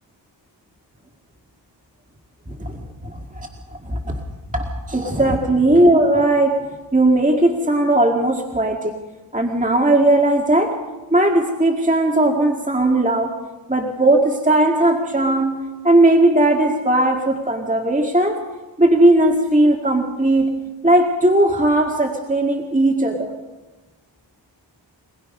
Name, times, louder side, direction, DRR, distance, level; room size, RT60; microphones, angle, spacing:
voice 1, 2.6-3.5 3.8-4.2 4.5-6.6 6.9-8.9 9.3-10.8 11.1-13.4 13.7-18.4 18.8-20.6 20.8-23.3, right 1 dB, 15° right, 1 dB, 2.0 m, -17 dB
23.5 x 21.0 x 5.5 m, 1.2 s
wide cardioid pair, 75°, 45 cm